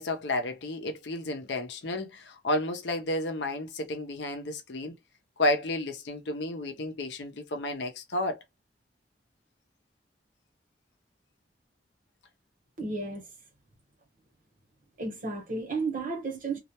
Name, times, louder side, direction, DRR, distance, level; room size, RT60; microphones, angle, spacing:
voice 1, 0.0-4.9 5.4-8.4, left 1 dB, 80° left, 0.6 m, -31 dB
voice 2, 12.8-13.3 15.0-16.6, right 3 dB, 50° right, 1.0 m, -33 dB
2.4 x 2.1 x 2.8 m
head